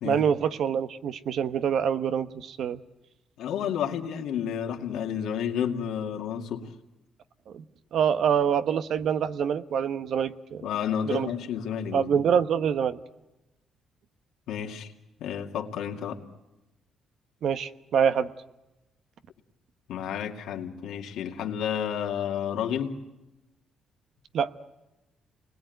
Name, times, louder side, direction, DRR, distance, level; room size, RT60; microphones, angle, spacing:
voice 1, 0.0-2.8 7.5-7.6 7.9-10.6 11.1-11.3 11.9-13.0 17.4-18.3 24.3-24.5, right 8 dB, 70° right, 11 dB, 1.1 m, -25 dB
voice 2, 3.4-6.7 10.6-12.2 14.5-14.9 15.2-16.2 19.9-23.0, left 8 dB, 85° left, 3 dB, 2.3 m, -31 dB
29.0 x 21.0 x 9.3 m, 0.99 s
cardioid pair, 90°, 0 cm